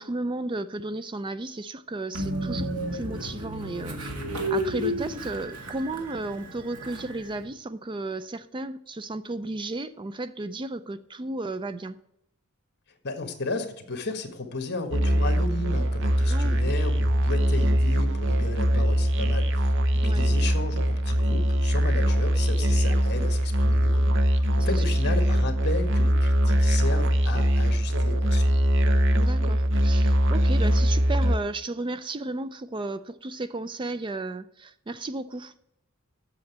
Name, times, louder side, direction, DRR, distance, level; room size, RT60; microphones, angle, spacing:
voice 1, 0.0-4.1 4.5-12.0 16.3-16.6 20.0-20.2 24.6-24.8 29.1-35.5, right 2 dB, 20° right, 0.4 m, -34 dB
Train, 2.1-7.4, equal, 85° right, 2.1 m, -32 dB
voice 2, 13.0-19.7 19.9-28.5, left 3 dB, 50° left, 1.6 m, -34 dB
Musical instrument, 14.9-31.4, equal, 60° right, 0.8 m, -22 dB
7.9 x 7.1 x 7.9 m
head